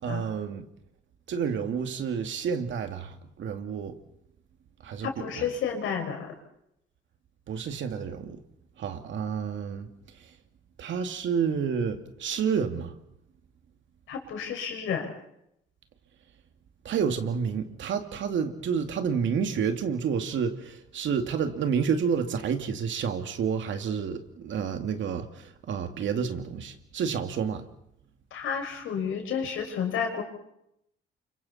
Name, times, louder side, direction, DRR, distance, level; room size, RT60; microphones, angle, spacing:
voice 1, 0.0-0.6 1.3-3.9 4.8-5.1 5.3-5.5 7.5-8.4 8.8-9.9 10.8-12.9 16.8-27.6, right 6 dB, 70° right, 2.4 m, -29 dB
voice 2, 5.0-6.3 14.1-15.1 28.3-30.2, left 7 dB, 85° left, 5.8 m, -31 dB
29.5 x 26.0 x 4.3 m
cardioid pair, 90°, 20 cm